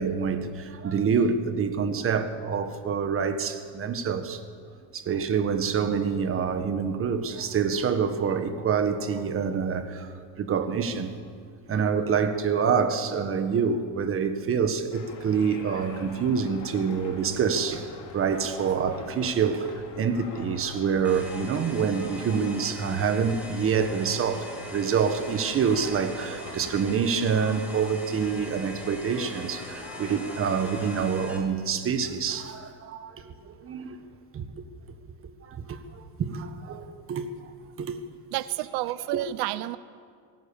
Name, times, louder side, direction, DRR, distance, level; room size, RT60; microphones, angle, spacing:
voice 1, 0.0-4.4 4.9-11.2 11.7-34.0 34.3-34.6 35.2-37.3 37.8-38.0 39.1-39.2, right 6 dB, 30° right, 1.5 m, -27 dB
sound 1, 14.9-31.1, left 4 dB, 45° left, 3.8 m, -44 dB
sound 2, 21.0-31.4, equal, 5° right, 3.2 m, -42 dB
voice 2, 38.3-39.8, right 16 dB, 65° right, 0.7 m, -30 dB
24.5 x 18.0 x 7.1 m
cardioid pair, 155°, 43 cm